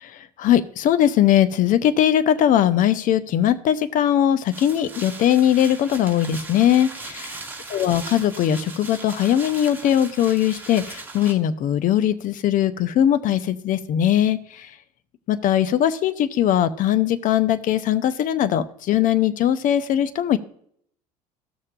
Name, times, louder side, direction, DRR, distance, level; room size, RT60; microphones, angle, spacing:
voice 1, 0.4-7.4 7.7-14.4 15.3-20.4, left 11 dB, 40° left, 12 dB, 0.7 m, -20 dB
sound 1, 4.5-11.3, right 3 dB, 10° right, 1.9 m, -38 dB
15.0 x 6.5 x 2.5 m, 0.66 s
figure-of-eight pair, 70°, 20 cm